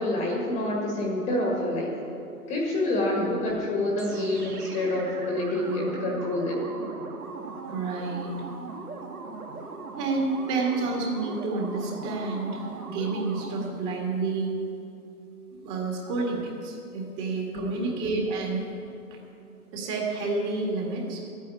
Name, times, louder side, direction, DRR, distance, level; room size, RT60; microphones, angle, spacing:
voice 1, 0.0-1.9 2.5-6.7 17.5-17.9, left 1 dB, 15° left, -2 dB, 1.7 m, -27 dB
sound 1, 4.0-13.8, right 4 dB, 70° right, 1.9 m, -39 dB
voice 2, 7.7-8.3 10.0-14.5 15.6-18.6 19.1-19.2 19.7-21.2, right 3 dB, 25° right, -1 dB, 2.0 m, -29 dB
12.0 x 9.3 x 8.4 m, 2.7 s
hypercardioid pair, 140°, 45 cm